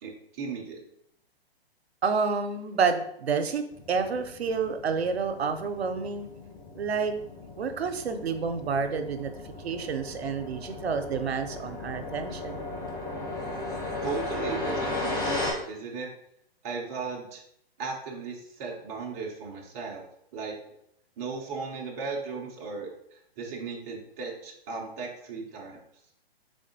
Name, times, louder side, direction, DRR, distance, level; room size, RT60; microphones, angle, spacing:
voice 1, 0.0-0.9 14.0-16.1 16.6-17.4 17.8-20.0 20.3-20.6 21.2-25.8, right 4 dB, 15° right, -2 dB, 0.3 m, -36 dB
voice 2, 2.0-3.6 3.9-6.3 6.8-7.1 7.6-9.3 9.6-12.7, right 5 dB, 85° right, 7 dB, 0.6 m, -29 dB
sound 1, 3.7-15.5, left 2 dB, 15° left, 0.7 m, -36 dB
3.5 x 3.4 x 2.6 m, 0.72 s
hypercardioid pair, 130°, 31 cm